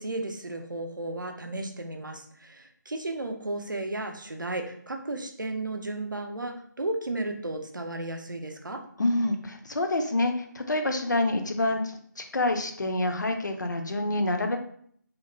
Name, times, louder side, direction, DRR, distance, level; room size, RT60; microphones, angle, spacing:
voice 1, 0.0-8.8, right 2 dB, 85° right, 5 dB, 0.4 m, -34 dB
voice 2, 9.0-14.6, left 2 dB, 70° left, 5 dB, 0.4 m, -27 dB
2.8 x 2.1 x 2.5 m, 0.62 s
figure-of-eight pair, 155°, 10 cm